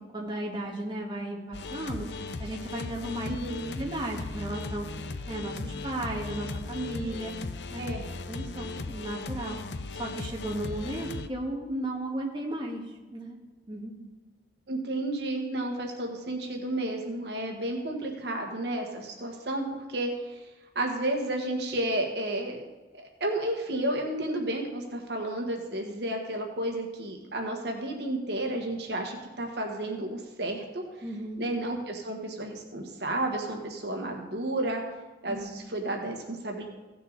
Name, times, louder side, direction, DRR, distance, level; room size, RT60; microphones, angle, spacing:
voice 1, 0.1-2.1 2.4-3.4 3.8-4.9 5.3-7.3 7.7-7.8 8.3-9.6 10.0-12.8 13.1-13.4 13.7-13.9 31.0-31.4 35.3-35.4, right 1 dB, 25° right, -2 dB, 1.7 m, -34 dB
sound 1, 1.5-11.3, left 3 dB, 75° left, 0.6 m, -37 dB
voice 2, 3.3-3.8 7.8-8.0 14.7-19.6 19.9-20.4 20.7-22.6 22.9-30.8 31.4-34.8 35.2-36.6, right 1 dB, 70° right, 2 dB, 1.5 m, -32 dB
16.0 x 6.6 x 4.0 m, 1.2 s
head